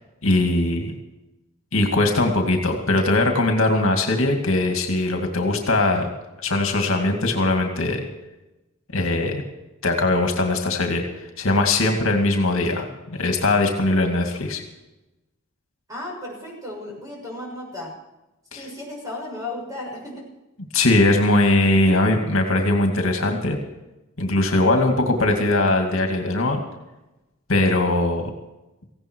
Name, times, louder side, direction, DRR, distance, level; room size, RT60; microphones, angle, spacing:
voice 1, 0.2-0.9 1.7-6.1 6.4-8.0 8.9-9.4 9.8-11.0 11.4-14.6 18.5-18.6 20.7-23.6 24.2-26.6 27.5-28.3, left 2 dB, 65° left, 3 dB, 2.3 m, -20 dB
voice 2, 15.9-17.9 18.5-20.2, left 2 dB, 15° right, -2 dB, 6.7 m, -34 dB
18.0 x 16.0 x 4.6 m, 1.0 s
head